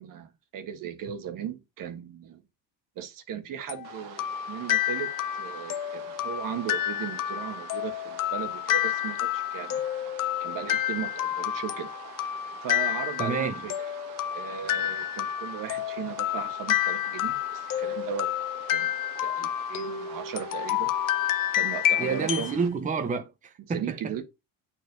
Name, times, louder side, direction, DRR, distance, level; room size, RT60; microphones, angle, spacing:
voice 1, 0.0-2.4 3.0-9.8 10.4-11.9 12.6-13.7 14.3-18.3 18.7-18.9 19.2-20.9 21.5-22.6 23.7-24.2, right 8 dB, 55° right, 1.3 m, -37 dB
sound 1, 3.7-22.6, left 12 dB, 55° left, 0.7 m, -29 dB
sound 2, 3.8-22.7, right 10 dB, 75° right, 1.2 m, -46 dB
voice 2, 13.2-13.5 22.0-24.0, right 5 dB, 20° right, 0.8 m, -29 dB
8.8 x 4.6 x 2.6 m
supercardioid pair, 90°, 39 cm